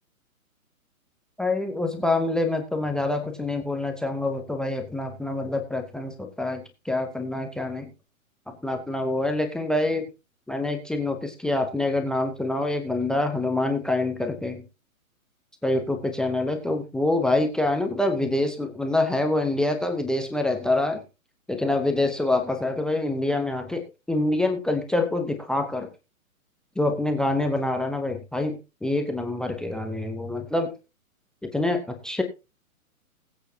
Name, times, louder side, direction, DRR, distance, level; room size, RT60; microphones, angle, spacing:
voice 1, 1.4-7.9 8.5-10.1 10.5-14.6 15.6-21.0 21.5-25.9 26.8-30.7 31.4-32.2, left 2 dB, ahead, 8 dB, 0.6 m, -26 dB
20.0 x 8.2 x 2.7 m, 0.29 s
figure-of-eight pair, 125°, 43 cm